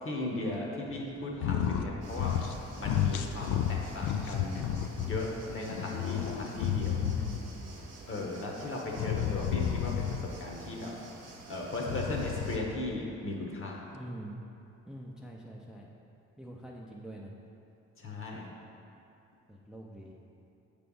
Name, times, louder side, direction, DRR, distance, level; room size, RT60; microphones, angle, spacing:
voice 1, 0.0-2.4 2.8-4.7 5.0-7.0 8.1-10.9 11.5-13.9 18.0-18.5, left 2 dB, 45° left, -1 dB, 1.2 m, -37 dB
sound 1, 1.3-2.6 2.8-5.2 5.6-7.6 8.9-10.3 11.8-12.8, left 9 dB, 75° left, 0.4 m, -31 dB
sound 2, 2.0-12.6, right 3 dB, 60° right, 1.0 m, -50 dB
voice 2, 5.0-5.6 6.4-7.7 13.9-14.4 14.9-15.9 16.4-17.3 19.5-20.2, right 1 dB, ahead, -2 dB, 0.5 m, -44 dB
6.6 x 3.4 x 5.5 m, 2.7 s
cardioid pair, 90°, 30 cm